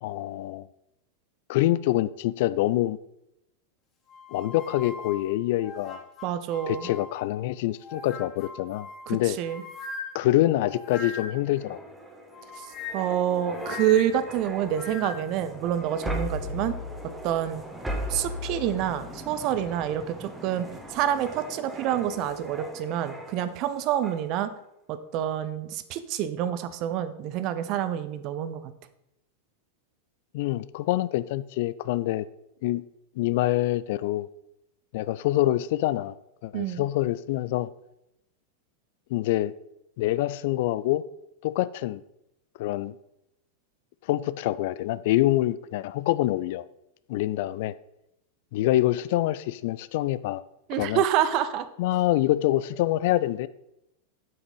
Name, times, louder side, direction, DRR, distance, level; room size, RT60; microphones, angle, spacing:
voice 1, 0.0-0.7 1.5-3.0 4.3-6.1 6.7-9.4 10.1-11.8 30.3-32.3 32.6-32.8 33.2-34.3 34.9-36.1 36.4-37.7 39.1-39.5 40.0-41.0 41.4-42.0 42.6-43.0 44.1-46.6 47.1-47.7 48.5-50.4 50.8-51.0 51.8-53.5, left 15 dB, 50° left, 17 dB, 0.3 m, -25 dB
sound 1, 4.1-7.4 7.8-11.5 12.3-15.4, left 4 dB, 25° left, 1.4 m, -41 dB
voice 2, 6.2-6.9 9.1-9.6 12.6-12.7 12.9-16.8 17.2-17.6 18.1-20.6 20.9-24.5 24.9-28.7 36.5-36.8 50.7-51.7, right 10 dB, 40° right, 12 dB, 0.7 m, -27 dB
sound 2, 11.3-23.7 24.0-24.3, equal, 5° right, 1.4 m, -38 dB
7.7 x 6.0 x 5.4 m, 0.85 s
figure-of-eight pair, 90°, 0 cm